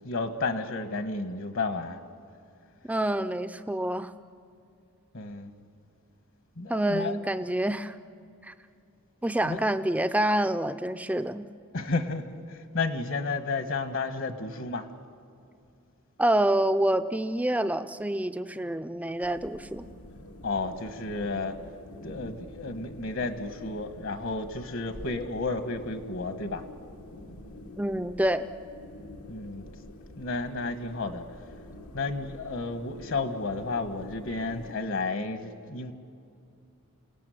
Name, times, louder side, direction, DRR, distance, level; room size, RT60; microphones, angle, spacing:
voice 1, 0.0-2.0 5.1-5.5 6.6-7.4 9.4-9.6 11.7-14.9 20.4-21.6 22.0-26.6 29.3-29.6 30.2-31.2 31.9-35.9, left 3 dB, 60° left, 9 dB, 1.5 m, -32 dB
voice 2, 2.9-4.1 6.7-7.9 8.4-8.5 9.2-11.5 16.2-19.8 27.8-28.5, right 1 dB, 5° right, 10 dB, 0.5 m, -27 dB
sound 1, 19.2-34.7, left 1 dB, 90° left, 1.9 m, -47 dB
28.0 x 18.0 x 9.3 m, 2.5 s
head